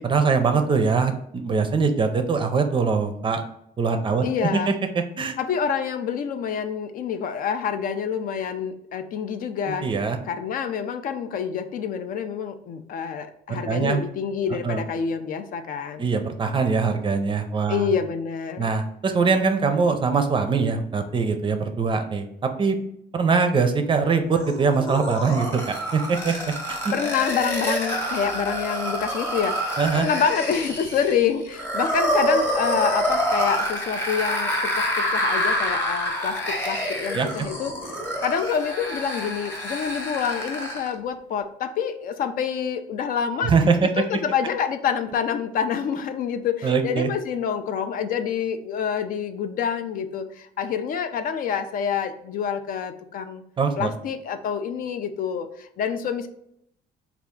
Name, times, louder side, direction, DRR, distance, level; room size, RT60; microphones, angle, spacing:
voice 1, 0.0-3.4 3.8-4.7 5.2-5.3 9.7-10.2 13.5-14.0 14.6-14.8 16.0-17.9 18.6-22.8 23.1-26.3 26.7-26.9 29.8-30.1 37.1-37.5 43.4-43.9 46.6-47.1 53.6-53.9, right 5 dB, 30° right, 7 dB, 0.5 m, -22 dB
voice 2, 4.2-4.7 5.4-9.9 10.3-16.1 17.7-18.7 26.9-37.7 38.2-43.5 43.8-53.4 53.8-56.3, left 7 dB, 55° left, 9 dB, 0.4 m, -27 dB
sound 1, 24.3-40.9, equal, 15° left, 0.9 m, -27 dB
3.4 x 2.4 x 3.6 m, 0.73 s
cardioid pair, 110°, 17 cm